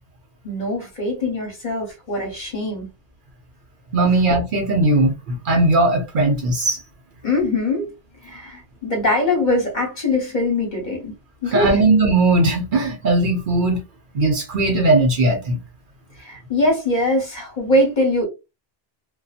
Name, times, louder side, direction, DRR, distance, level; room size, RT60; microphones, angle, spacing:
voice 1, 0.4-2.9 7.2-7.9 8.2-11.1 11.4-11.8 16.2-18.2, left 1 dB, 45° left, 1.1 m, -22 dB
voice 2, 3.9-6.8 11.5-13.8 14.1-15.6, right 2 dB, 55° right, 0.8 m, -18 dB
2.6 x 2.3 x 2.4 m
omnidirectional pair, 1.1 m